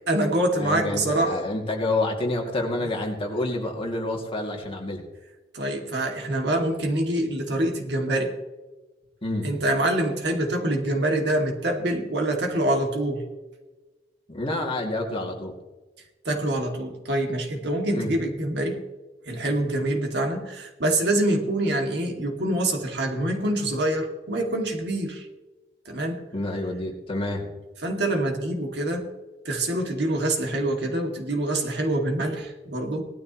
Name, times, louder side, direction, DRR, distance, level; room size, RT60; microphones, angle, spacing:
voice 1, 0.1-1.4 5.5-8.3 9.4-13.2 16.2-18.8 19.3-25.3 25.9-26.2 27.8-29.1 29.4-33.1, right 1 dB, 70° right, 2 dB, 2.5 m, -25 dB
voice 2, 0.6-5.0 9.2-9.6 14.3-15.5 17.9-18.1 26.3-27.5, left 2 dB, 35° left, 1 dB, 2.6 m, -28 dB
18.5 x 13.0 x 3.1 m, 1.2 s
head